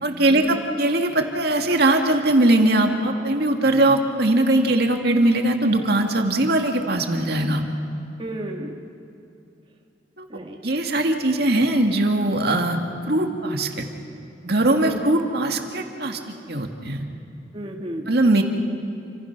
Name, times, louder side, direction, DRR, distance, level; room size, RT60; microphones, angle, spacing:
voice 1, 0.0-7.6 10.2-10.3 10.6-12.8 13.1-13.8 14.4-16.2 16.5-17.0 18.1-18.4, right 1 dB, 65° right, 4 dB, 2.2 m, -20 dB
voice 2, 8.2-8.8 10.3-10.6 14.8-15.0 17.5-18.2, right 1 dB, 30° right, 1 dB, 1.7 m, -33 dB
29.0 x 26.5 x 6.1 m, 2.7 s
head